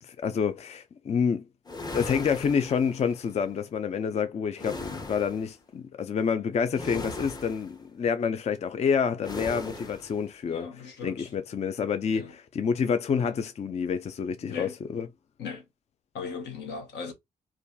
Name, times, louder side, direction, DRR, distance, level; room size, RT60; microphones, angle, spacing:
voice 1, 0.0-1.4 1.9-15.1, left 6 dB, 40° left, 0.4 m, -28 dB
sound 1, 1.7-3.3 4.6-5.5 6.7-7.8 9.2-10.2, left 2 dB, 20° left, 0.8 m, -38 dB
voice 2, 10.5-11.3 12.1-12.3 14.4-14.8 15.4-15.7 16.1-17.1, left 5 dB, 75° left, 0.9 m, -38 dB
2.5 x 2.3 x 2.2 m
hypercardioid pair, 45°, 18 cm